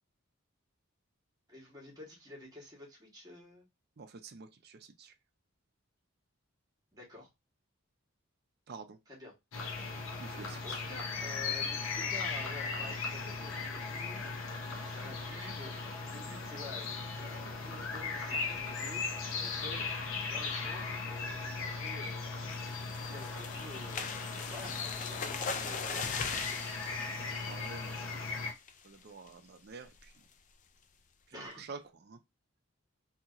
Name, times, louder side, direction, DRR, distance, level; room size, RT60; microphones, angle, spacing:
voice 1, 1.5-3.7 6.9-7.3 9.1-9.3 10.6-19.0 19.4-19.9 20.3-22.2 23.1-26.4 31.3-31.6, left 2 dB, 15° right, 1.3 m, -50 dB
voice 2, 4.0-5.1 8.7-9.0 10.2-10.8 27.1-28.3 28.8-30.1 31.3-32.2, right 4 dB, 50° right, 0.5 m, -49 dB
sound 1, 9.5-28.5, left 4 dB, 70° left, 0.8 m, -38 dB
sound 2, 22.5-28.3 28.7-28.9 29.3-29.4 29.7-30.0, left 5 dB, 35° left, 0.3 m, -40 dB
2.8 x 2.8 x 2.4 m
head